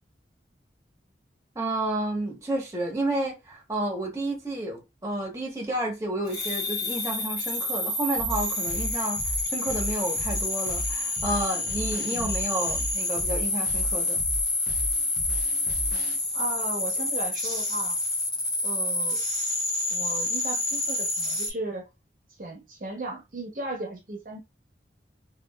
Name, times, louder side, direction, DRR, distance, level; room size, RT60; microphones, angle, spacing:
voice 1, 1.5-14.2, right 1 dB, 15° right, 0.8 m, -31 dB
sound 1, 6.3-21.5, left 2 dB, 20° left, 1.7 m, -28 dB
sound 2, 8.2-16.2, equal, 60° left, 0.7 m, -36 dB
voice 2, 12.1-12.4 16.3-18.0 18.6-19.2 19.9-21.9 22.4-24.4, right 2 dB, 50° right, 0.7 m, -36 dB
3.0 x 2.3 x 2.2 m
head